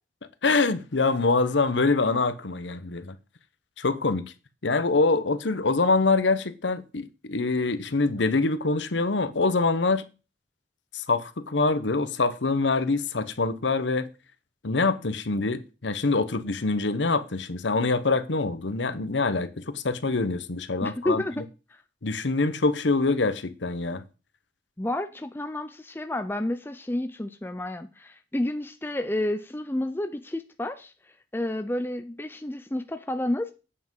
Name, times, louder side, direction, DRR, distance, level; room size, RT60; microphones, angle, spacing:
voice 1, 0.4-3.2 3.8-4.3 4.6-10.0 10.9-14.1 14.6-21.2 22.0-24.0, left 3 dB, 75° left, 0.9 m, -25 dB
voice 2, 20.8-21.4 24.8-30.9 31.3-33.5, left 1 dB, 10° left, 0.5 m, -30 dB
8.6 x 7.4 x 5.5 m
head